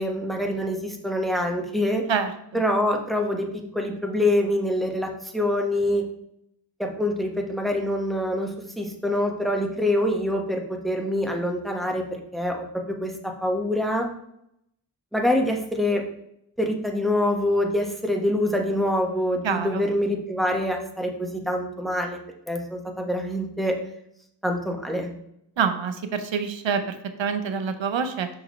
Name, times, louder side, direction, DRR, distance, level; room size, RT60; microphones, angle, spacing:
voice 1, 0.0-2.0 2.5-3.5 3.7-6.0 6.8-14.1 15.1-16.0 16.6-22.2 22.5-23.7 24.4-25.1, left 1 dB, ahead, 2 dB, 1.3 m, -25 dB
voice 2, 2.1-2.6 19.4-19.8 25.6-28.3, right 6 dB, 85° right, 9 dB, 0.7 m, -26 dB
6.3 x 6.0 x 3.1 m, 0.76 s
cardioid pair, 55°, 45 cm